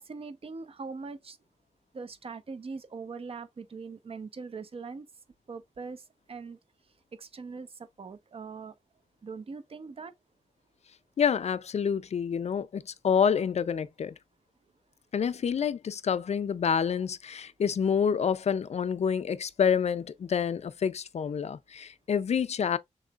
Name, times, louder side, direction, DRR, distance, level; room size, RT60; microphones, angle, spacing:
voice 1, 0.0-1.4 1.9-5.1 5.5-6.6 7.2-8.7 9.2-10.1, right 4 dB, 50° right, 0.7 m, -41 dB
voice 2, 11.2-14.1 15.1-22.8, left 7 dB, 60° left, 0.4 m, -28 dB
6.3 x 2.9 x 2.4 m
wide cardioid pair, 135°, 12 cm